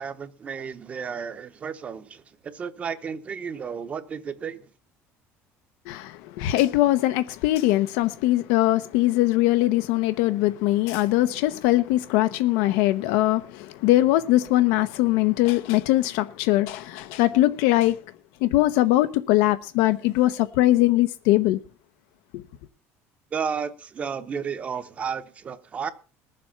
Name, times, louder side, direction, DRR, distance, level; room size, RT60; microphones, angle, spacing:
voice 1, 0.0-2.2 2.5-4.6 23.3-25.9, right 6 dB, 25° right, 0.8 m, -32 dB
voice 2, 5.9-18.0 18.4-21.6, left 16 dB, 85° left, 0.8 m, -21 dB
20.0 x 7.6 x 5.7 m
cardioid pair, 180°, 6 cm